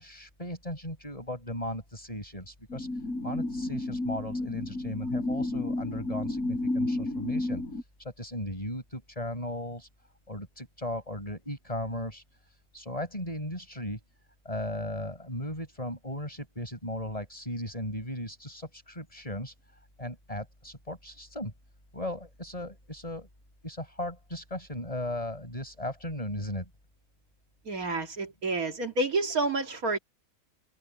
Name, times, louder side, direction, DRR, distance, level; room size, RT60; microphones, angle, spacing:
voice 1, 0.0-9.9 10.3-14.0 14.5-19.5 20.0-21.5 21.9-23.3 23.6-26.7, left 1 dB, 25° left, 7.1 m, -37 dB
(GF) Resonant wind at the train tracks, 2.7-7.8, left 2 dB, 85° left, 4.4 m, -31 dB
voice 2, 27.6-30.0, right 2 dB, 85° right, 2.7 m, -29 dB
omnidirectional pair, 1.5 m